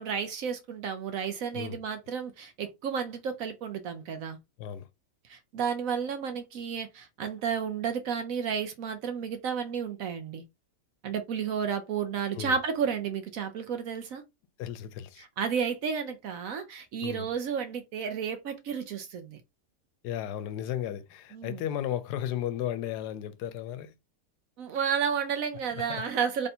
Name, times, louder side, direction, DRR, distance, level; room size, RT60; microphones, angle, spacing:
voice 1, 0.0-4.4 5.3-10.4 11.0-14.2 15.2-19.4 21.3-21.6 24.6-26.5, right 7 dB, 65° right, 0.9 m, -32 dB
voice 2, 14.6-15.3 17.0-17.3 20.0-23.9 25.7-26.0, left 11 dB, 80° left, 1.1 m, -34 dB
3.4 x 2.6 x 4.2 m
omnidirectional pair, 1.7 m